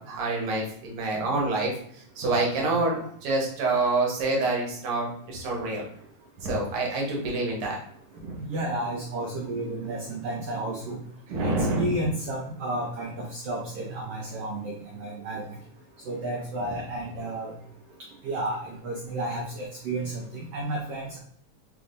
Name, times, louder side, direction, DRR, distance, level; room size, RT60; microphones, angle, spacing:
voice 1, 0.0-5.8 6.4-7.8 8.2-8.3 11.3-11.9, right 2 dB, 60° right, -2 dB, 1.7 m, -27 dB
voice 2, 8.5-11.0 11.4-11.5 11.8-15.4 16.1-17.5 18.2-20.3 20.5-21.2, right 1 dB, 80° right, -1 dB, 1.4 m, -32 dB
5.2 x 3.4 x 2.5 m, 0.63 s
omnidirectional pair, 3.5 m